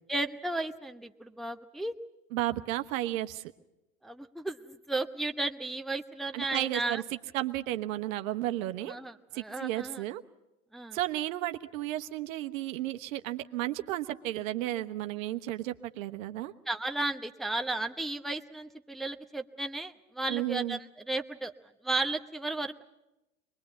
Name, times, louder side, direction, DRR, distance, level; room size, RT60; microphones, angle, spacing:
voice 1, 0.1-2.0 4.0-7.0 8.8-10.0 10.7-11.0 16.7-21.5 21.8-22.8, right 2 dB, ahead, 4 dB, 0.9 m, -34 dB
voice 2, 2.3-3.4 6.3-7.0 7.3-8.9 9.3-10.2 10.9-16.5 20.3-20.8, right 14 dB, 65° right, 8 dB, 1.2 m, -33 dB
24.0 x 21.0 x 8.1 m, 0.95 s
hypercardioid pair, 80°, 43 cm